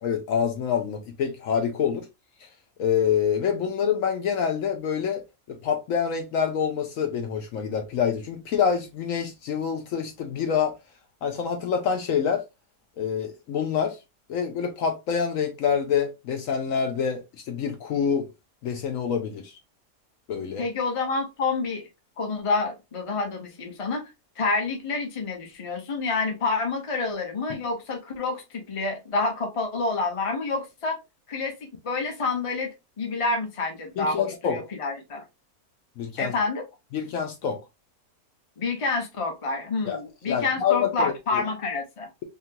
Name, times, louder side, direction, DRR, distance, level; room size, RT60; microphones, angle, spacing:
voice 1, 0.0-2.0 2.8-5.2 5.5-10.7 11.2-12.4 13.0-14.0 14.3-17.2 17.5-18.3 18.6-19.5 20.3-20.7 27.5-27.6 34.0-34.6 36.0-36.3 36.9-37.6 39.9-40.0 40.3-41.4, left 7 dB, 70° left, 0.9 m, -26 dB
voice 2, 20.6-21.9 22.2-24.0 24.4-31.0 31.3-32.7 33.0-35.2 36.2-36.7 38.6-42.1, left 3 dB, 30° left, 0.7 m, -28 dB
3.6 x 2.3 x 2.7 m
omnidirectional pair, 1.6 m